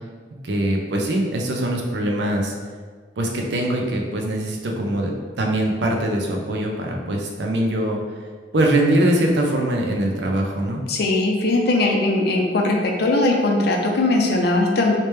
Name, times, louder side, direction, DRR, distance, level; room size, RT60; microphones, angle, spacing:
voice 1, 0.4-2.5 3.2-5.1 5.4-8.0 8.5-10.8, right 1 dB, 80° right, 1 dB, 0.6 m, -22 dB
voice 2, 10.9-15.0, left 2 dB, 65° left, 1 dB, 0.5 m, -19 dB
3.2 x 2.9 x 3.2 m, 1.6 s
head